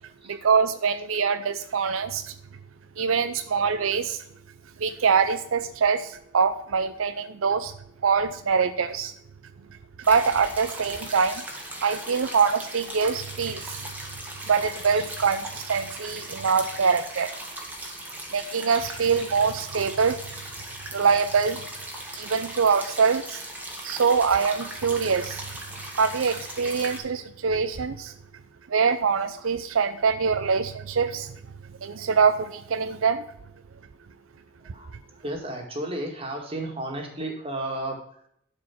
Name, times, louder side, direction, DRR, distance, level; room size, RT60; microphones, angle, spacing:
voice 1, 0.3-2.3 3.0-4.2 4.8-7.7 8.0-9.1 10.1-11.4 11.8-13.8 14.5-17.3 18.3-20.2 20.9-21.6 22.1-23.4 23.8-25.4 26.0-28.1 28.7-31.4 31.8-33.2, right 5 dB, 85° right, 10 dB, 0.6 m, -24 dB
sound 1, 10.0-27.0, right 1 dB, 10° right, 1.7 m, -38 dB
voice 2, 34.7-38.0, right 1 dB, 30° right, 1 dB, 2.2 m, -33 dB
11.5 x 4.9 x 5.9 m, 0.71 s
head